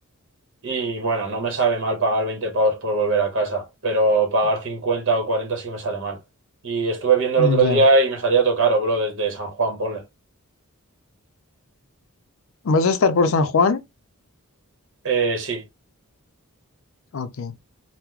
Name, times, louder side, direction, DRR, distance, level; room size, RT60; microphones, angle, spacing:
voice 1, 0.6-6.2 6.6-10.0 15.0-15.6, right 3 dB, 55° right, 1.0 m, -21 dB
voice 2, 7.4-7.8 12.6-13.8 17.1-17.5, left 4 dB, 65° left, 0.5 m, -20 dB
3.0 x 2.1 x 3.7 m
head